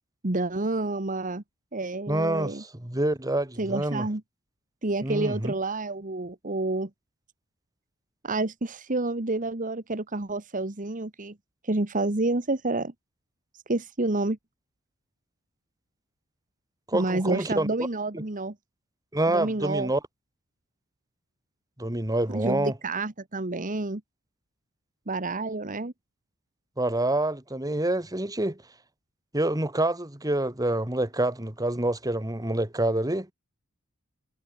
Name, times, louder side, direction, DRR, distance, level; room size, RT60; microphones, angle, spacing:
voice 1, 0.2-1.4 1.7-2.6 3.6-4.2 4.8-6.9 8.2-11.3 11.6-12.9 13.7-14.4 16.9-18.5 19.3-19.9 22.3-24.0 25.1-25.9, right 2 dB, 35° right, 1.4 m, -29 dB
voice 2, 2.1-4.0 5.0-5.5 16.9-17.7 18.1-18.2 19.1-20.0 21.8-22.7 26.8-28.6 29.3-33.3, right 1 dB, 15° right, 2.1 m, -27 dB
head